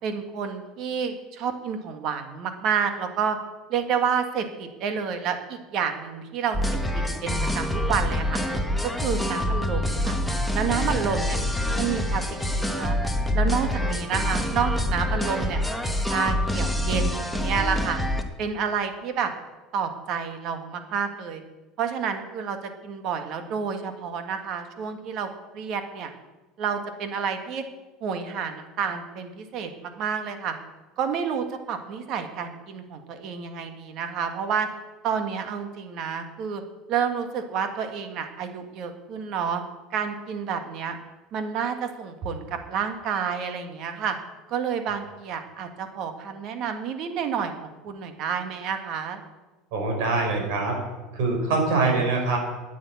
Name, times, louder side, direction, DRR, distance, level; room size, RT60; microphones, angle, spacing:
voice 1, 0.0-3.4 3.7-8.4 8.8-10.2 10.5-11.4 11.8-13.0 13.3-15.6 16.0-18.0 18.4-19.3 19.7-21.4 21.8-25.3 25.5-26.1 26.6-27.6 28.0-30.6 31.0-34.7 35.0-36.6 36.9-39.6 39.9-40.9 41.3-44.2 44.5-49.2, right 7 dB, 45° right, 7 dB, 1.6 m, -29 dB
sound 1, 6.5-18.2, left 1 dB, ahead, 1.0 m, -26 dB
voice 2, 49.7-50.8 51.1-52.4, right 3 dB, 70° right, 1 dB, 5.1 m, -24 dB
9.9 x 9.5 x 8.5 m, 1.2 s
cardioid pair, 155°, 0 cm